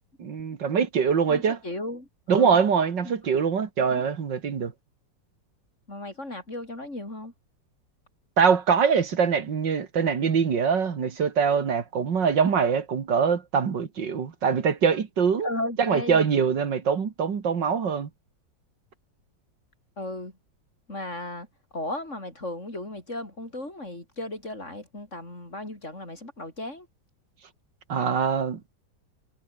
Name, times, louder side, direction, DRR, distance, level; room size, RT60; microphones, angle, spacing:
voice 1, 0.2-1.6 2.3-4.7 8.4-15.5 15.8-18.1 27.9-28.6, right 6 dB, 75° right, 2.6 m, -23 dB
voice 2, 1.3-2.6 3.0-3.1 3.9-4.1 5.9-7.3 15.4-16.2 20.0-20.4 20.9-21.5 21.7-26.9, left 1 dB, 40° left, 6.8 m, -35 dB
omnidirectional pair, 2.0 m